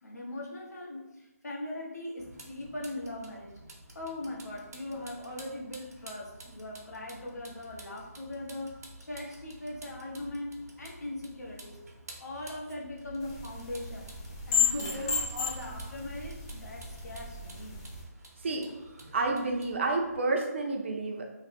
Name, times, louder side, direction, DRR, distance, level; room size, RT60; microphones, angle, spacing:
voice 1, 0.0-3.6 3.9-11.8 12.2-14.1 14.5-17.8, left 1 dB, 75° left, -2 dB, 1.1 m, -40 dB
Vehicle, 2.2-20.2, right 1 dB, 70° right, 0.9 m, -51 dB
sound 1, 13.2-18.0, left 6 dB, 20° left, 0.5 m, -33 dB
voice 2, 18.4-18.7 19.1-21.2, right 3 dB, 45° right, 2 dB, 0.6 m, -30 dB
3.2 x 2.0 x 4.2 m, 0.99 s
figure-of-eight pair, 160°, 9 cm